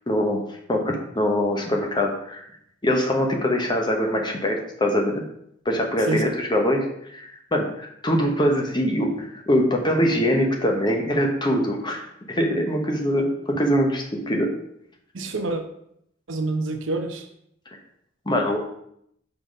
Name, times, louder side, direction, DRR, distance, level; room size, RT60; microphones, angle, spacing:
voice 1, 0.1-2.4 2.8-5.2 5.6-6.9 7.1-14.5 18.3-18.6, equal, 25° left, 1 dB, 1.0 m, -23 dB
voice 2, 15.1-15.6 16.3-17.3, right 2 dB, 75° right, 6 dB, 0.8 m, -27 dB
5.6 x 3.9 x 5.3 m, 0.73 s
head